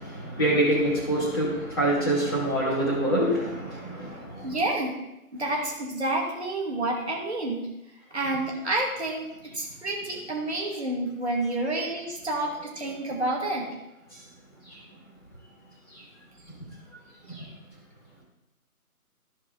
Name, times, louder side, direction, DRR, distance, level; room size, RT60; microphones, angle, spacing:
voice 1, 0.0-4.2 17.3-17.4, right 1 dB, 15° left, -7 dB, 2.3 m, -25 dB
voice 2, 4.4-4.9 5.3-7.7 8.1-9.3 9.5-13.7, right 2 dB, 45° right, -2 dB, 2.3 m, -29 dB
14.5 x 4.8 x 3.8 m, 0.91 s
figure-of-eight pair, 160°, 45 cm